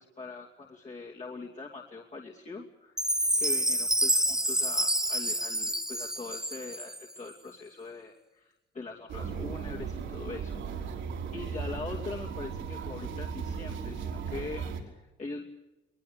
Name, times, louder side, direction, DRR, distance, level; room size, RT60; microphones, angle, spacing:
voice 1, 0.0-3.1 3.4-10.6 11.3-14.6 15.0-15.4, left 3 dB, 35° left, -2 dB, 2.7 m, -42 dB
Chime, 3.0-7.2, right 1 dB, 5° right, 0.7 m, -28 dB
sound 1, 9.1-14.8, right 6 dB, 85° right, 4.0 m, -36 dB
22.0 x 21.0 x 8.3 m, 0.98 s
cardioid pair, 90°, 20 cm